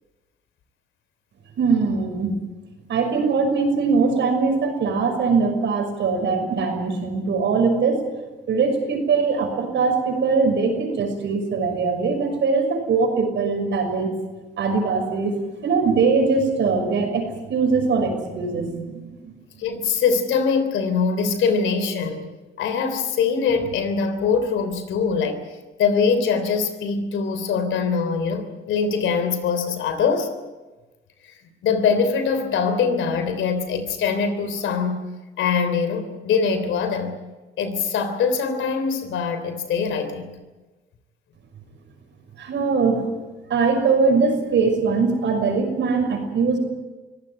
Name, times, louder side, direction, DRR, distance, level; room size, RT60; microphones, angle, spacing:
voice 1, 1.6-2.3 2.9-8.1 8.5-14.1 14.6-19.4 42.4-43.1 43.5-46.6, right 4 dB, 70° right, 5 dB, 6.1 m, -21 dB
voice 2, 19.6-22.3 22.6-25.4 25.8-30.3 31.6-35.0 35.4-37.1 37.6-40.4, left 5 dB, 80° left, 9 dB, 3.4 m, -23 dB
24.0 x 16.5 x 9.0 m, 1.2 s
cardioid pair, 90°, 20 cm